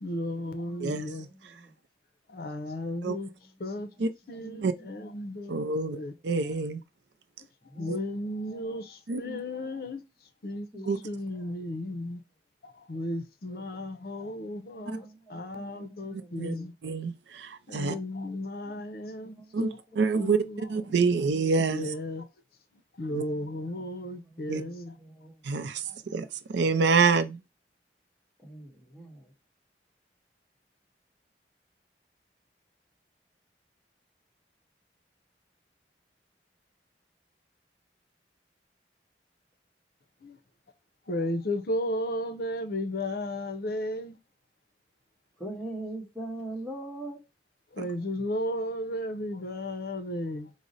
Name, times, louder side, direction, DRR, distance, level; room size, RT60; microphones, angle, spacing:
voice 1, 0.0-1.3 2.3-3.3 3.6-3.9 4.3-5.6 5.9-6.1 7.8-10.0 10.4-12.2 12.6-16.7 17.7-19.8 20.1-21.1 21.6-22.3 23.0-25.0 25.9-26.0 40.2-40.4 41.1-44.2 47.7-50.5, left 1 dB, 55° left, 0.6 m, -34 dB
voice 2, 0.7-1.7 2.8-3.1 3.8-3.9 4.4-4.7 5.0-6.1 7.6-8.8 9.2-9.4 10.7-11.0 13.5-14.1 14.4-17.1 18.3-19.6 19.9-20.3 23.1-23.9 24.2-25.4 28.4-29.3 45.4-47.2, right 1 dB, 5° left, 1.3 m, -44 dB
voice 3, 5.5-6.8 7.9-8.0 9.1-9.2 10.9-11.0 14.9-15.0 16.1-16.5 16.8-18.0 19.5-19.7 20.0-21.9 23.1-23.2 24.5-24.6 25.4-27.4 47.8-47.9, right 4 dB, 75° right, 0.4 m, -27 dB
4.8 x 2.1 x 3.9 m
head